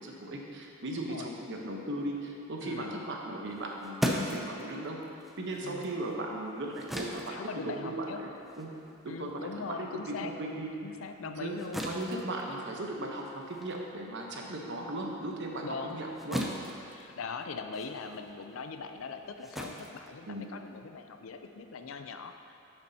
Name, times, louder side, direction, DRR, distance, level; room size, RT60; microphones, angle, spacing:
voice 1, 0.0-5.0 5.4-8.1 8.6-8.7 9.0-10.7 11.2-11.5 11.9-16.5 20.3-20.5, right 1 dB, 60° right, 0 dB, 1.0 m, -37 dB
voice 2, 1.0-1.3 2.6-3.0 5.6-5.8 7.3-8.2 9.1-10.3 10.8-11.8 15.6-16.0 16.9-22.6, left 4 dB, 75° left, 7 dB, 0.5 m, -41 dB
sound 1, 3.5-10.3 10.6-20.8, equal, ahead, 0.5 m, -40 dB
9.9 x 6.8 x 2.8 m, 2.7 s
head